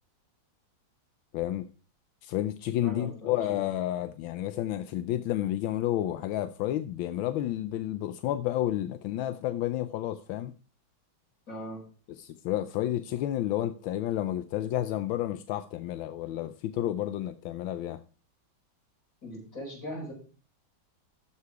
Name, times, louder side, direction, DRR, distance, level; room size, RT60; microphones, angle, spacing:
voice 1, 1.3-1.7 2.2-10.5 12.1-18.0, left 13 dB, 85° left, 1.4 m, -31 dB
voice 2, 2.8-3.4 11.5-11.8 19.2-20.1, equal, 40° left, 6.1 m, -39 dB
13.5 x 5.8 x 4.7 m
omnidirectional pair, 2.1 m